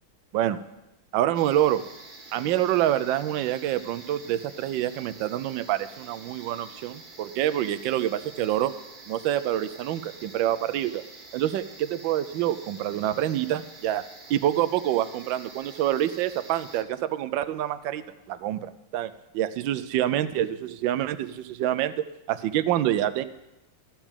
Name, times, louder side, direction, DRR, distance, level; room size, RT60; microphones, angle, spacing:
voice 1, 1.1-1.8 2.3-8.7 9.1-11.0 11.3-14.0 14.3-18.0 18.3-21.9 22.3-23.2, right 12 dB, 75° right, 12 dB, 1.3 m, -26 dB
sound 1, 1.3-16.8, right 3 dB, 50° right, 2.1 m, -47 dB
14.0 x 6.0 x 8.8 m, 0.95 s
omnidirectional pair, 2.1 m